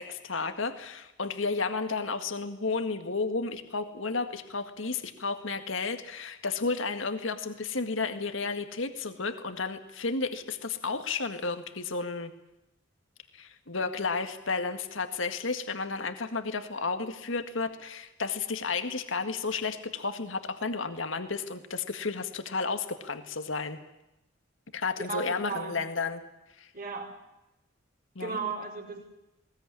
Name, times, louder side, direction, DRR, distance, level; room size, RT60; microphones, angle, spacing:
voice 1, 0.0-12.3 13.3-23.8 24.7-26.2 26.6-26.7 28.2-28.4, left 4 dB, 70° left, 8 dB, 1.9 m, -32 dB
voice 2, 25.0-25.8 26.7-27.2 28.2-29.0, right 4 dB, 45° right, -2 dB, 4.8 m, -35 dB
20.5 x 19.5 x 10.0 m, 0.91 s
head